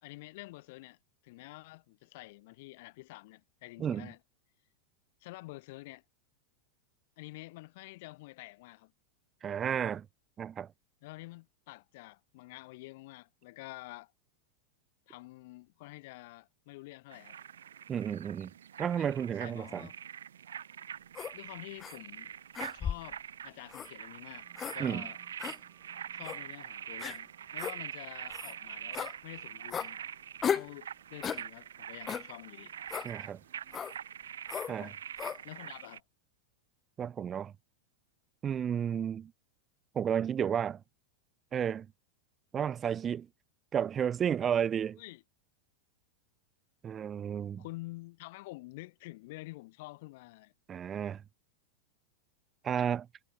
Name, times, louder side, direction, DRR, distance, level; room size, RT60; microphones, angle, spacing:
voice 1, 0.0-1.0 1.2-4.2 5.2-6.0 7.2-8.9 11.0-14.1 15.1-17.4 19.0-19.9 21.3-22.3 22.7-25.2 26.1-30.0 30.5-32.7 34.7-35.0 35.4-36.0 45.0-45.2 47.6-50.5, left 21 dB, 50° left, 2.6 m, -48 dB
voice 2, 9.4-10.1 10.4-10.7 17.9-18.5 18.8-19.9 24.8-25.1 33.0-33.4 34.7-34.9 37.0-37.5 38.4-39.3 39.9-40.8 41.5-41.9 42.5-43.3 43.7-45.0 46.8-47.6 50.7-51.2 52.6-53.1, right 8 dB, 25° right, 0.5 m, -32 dB
sound 1, 17.1-36.0, right 9 dB, 65° right, 0.6 m, -44 dB
sound 2, 21.1-21.3 21.8-22.0 22.5-23.1 23.7-23.9 24.6-24.8 25.4-25.6 26.2-26.4 27.0-27.2 27.6-27.8 28.3-28.5 28.9-29.1 29.7-29.9 30.4-30.7 31.2-31.4 32.1-32.3 32.9-33.1 33.7-33.9 34.5-34.7 35.2-35.4, left 8 dB, 20° left, 0.7 m, -35 dB
sound 3, 24.3-33.9, right 23 dB, 40° right, 7.4 m, -65 dB
figure-of-eight pair, 90°, 0 cm